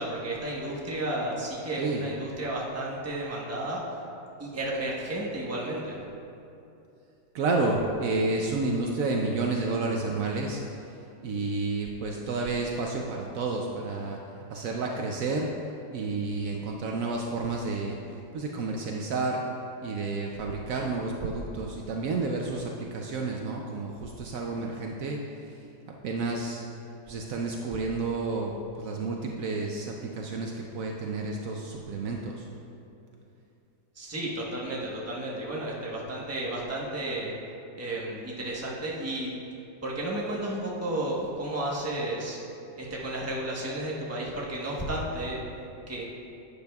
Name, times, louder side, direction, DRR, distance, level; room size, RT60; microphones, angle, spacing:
voice 1, 0.0-3.8 4.4-6.0 33.9-37.3 37.8-39.3 39.8-42.4 42.8-45.4 45.9-46.0, right 1 dB, 10° right, -4 dB, 0.7 m, -32 dB
voice 2, 7.3-10.6 11.2-14.2 14.5-15.5 15.9-18.0 18.3-19.4 19.8-25.2 26.0-26.6 27.1-28.5 28.8-32.5, right 3 dB, 80° right, 0 dB, 0.7 m, -30 dB
12.0 x 8.5 x 2.3 m, 2.7 s
omnidirectional pair, 2.1 m